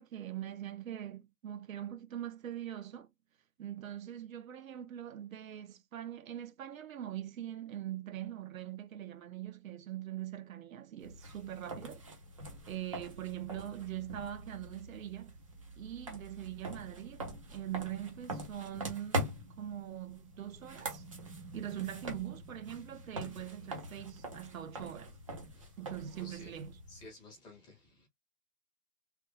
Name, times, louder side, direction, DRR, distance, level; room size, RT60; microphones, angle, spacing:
voice 1, 0.0-3.1 3.6-12.0 12.7-15.4 15.8-25.1 25.8-26.7, right 11 dB, 60° right, 0.7 m, -42 dB
sound 1, 11.0-27.1, right 1 dB, 25° right, 0.4 m, -43 dB
voice 2, 26.0-26.6 26.9-28.1, left 1 dB, 10° left, 0.7 m, -53 dB
3.5 x 2.2 x 3.0 m
hypercardioid pair, 150°, 46 cm